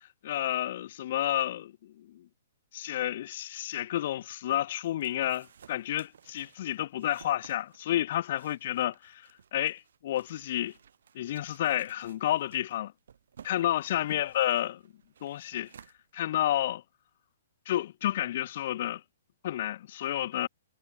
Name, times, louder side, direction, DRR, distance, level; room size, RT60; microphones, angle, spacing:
voice 1, 0.2-2.1 2.7-10.7 11.1-12.9 13.4-14.8 15.2-15.7 16.1-16.8 17.7-19.0 19.4-20.5, left 13 dB, 55° left, 1.0 m, -30 dB
sound 1, 4.2-16.7, right 8 dB, 70° right, 4.4 m, -57 dB
hypercardioid pair, 140°, 0 cm